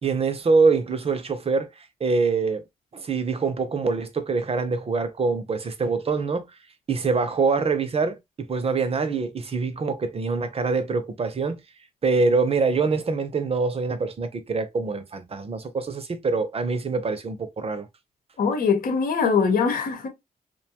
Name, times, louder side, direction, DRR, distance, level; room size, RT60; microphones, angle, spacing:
voice 1, 0.0-1.7 2.0-2.6 2.9-6.5 6.9-8.2 8.5-11.6 12.0-17.9, right 4 dB, 45° right, 0.6 m, -24 dB
voice 2, 18.4-20.1, left 5 dB, 80° left, 1.0 m, -22 dB
2.6 x 2.2 x 2.8 m
cardioid pair, 70°, 15 cm